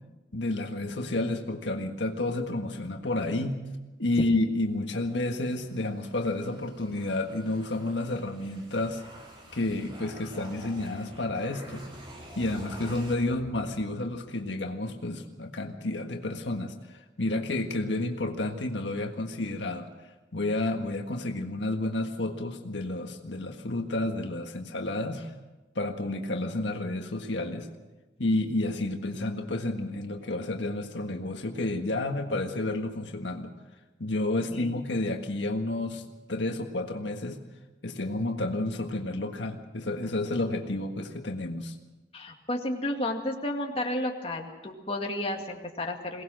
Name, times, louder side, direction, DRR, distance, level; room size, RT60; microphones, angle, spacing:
voice 1, 0.3-3.6 4.0-9.0 9.5-11.8 12.3-19.9 20.3-25.3 25.7-27.7 28.2-33.5 34.0-37.4 37.8-41.7, left 2 dB, 80° left, 4 dB, 1.6 m, -30 dB
sound 1, 5.0-14.4, equal, 30° right, 3.7 m, -48 dB
voice 2, 42.1-46.2, left 1 dB, 30° left, 2 dB, 2.2 m, -32 dB
22.5 x 18.5 x 6.5 m, 1.1 s
head